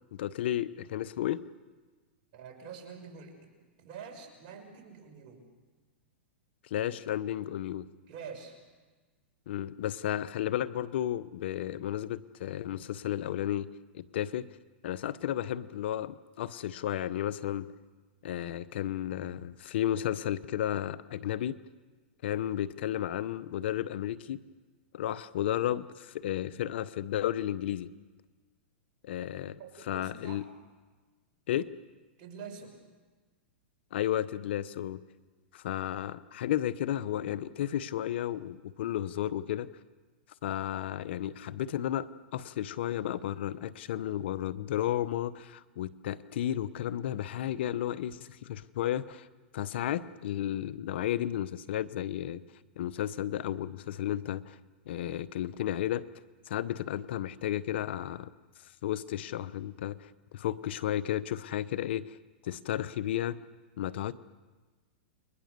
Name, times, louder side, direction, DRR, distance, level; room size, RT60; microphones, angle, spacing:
voice 1, 0.2-1.4 6.6-7.9 9.5-13.7 13.9-14.5 14.8-17.7 18.2-21.6 22.2-24.4 24.9-27.9 29.0-30.4 31.5-31.7 33.9-35.0 35.5-39.7 40.4-49.3 49.5-52.4 52.8-54.6 54.9-56.1 56.5-58.3 58.6-62.2 62.4-63.4 63.8-64.1, left 12 dB, 65° left, 16 dB, 0.9 m, -33 dB
voice 2, 2.3-3.4 3.8-5.4 8.1-8.6 29.6-30.4 32.2-32.8, right 6 dB, 45° right, 3 dB, 6.2 m, -46 dB
29.5 x 22.5 x 6.8 m, 1.3 s
hypercardioid pair, 130°, 6 cm